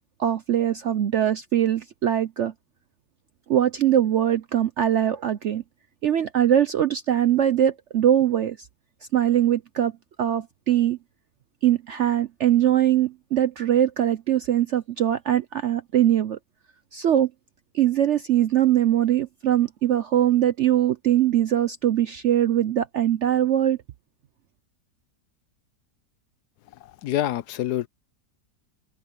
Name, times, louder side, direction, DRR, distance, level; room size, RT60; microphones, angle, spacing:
voice 1, 0.2-2.5 3.5-5.6 6.0-8.6 9.1-9.9 10.2-11.0 11.6-16.4 16.9-17.3 17.7-23.8, right 11 dB, 65° right, 0.7 m, -22 dB
voice 2, 27.0-27.9, left 12 dB, 75° left, 1.1 m, -26 dB
omnidirectional pair, 1.8 m